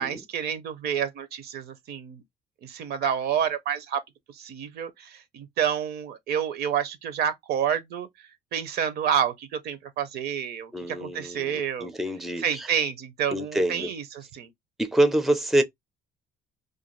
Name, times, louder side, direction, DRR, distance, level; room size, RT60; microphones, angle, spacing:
voice 1, 0.0-2.2 2.6-4.0 4.3-11.9 12.4-14.5, right 8 dB, 70° right, 0.6 m, -29 dB
voice 2, 10.7-12.7 13.3-13.9 14.8-15.6, right 1 dB, ahead, 0.4 m, -26 dB
2.5 x 2.3 x 2.9 m
cardioid pair, 110°, 17 cm